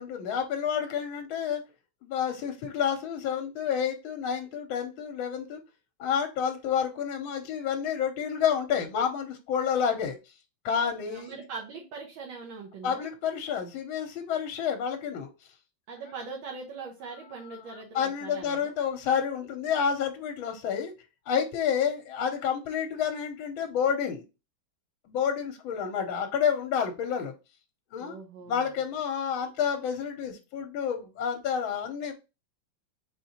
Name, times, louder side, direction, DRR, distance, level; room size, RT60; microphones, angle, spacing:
voice 1, 0.0-1.6 2.0-5.6 6.0-10.2 10.6-11.3 12.8-15.3 17.9-20.9 21.3-24.2 25.1-27.3 27.9-28.2 28.5-32.1, left 7 dB, 80° left, 6 dB, 1.4 m, -29 dB
voice 2, 11.0-13.1 15.9-18.7 28.0-28.7, right 4 dB, 70° right, -2 dB, 1.6 m, -41 dB
4.1 x 3.6 x 2.8 m, 0.28 s
omnidirectional pair, 2.2 m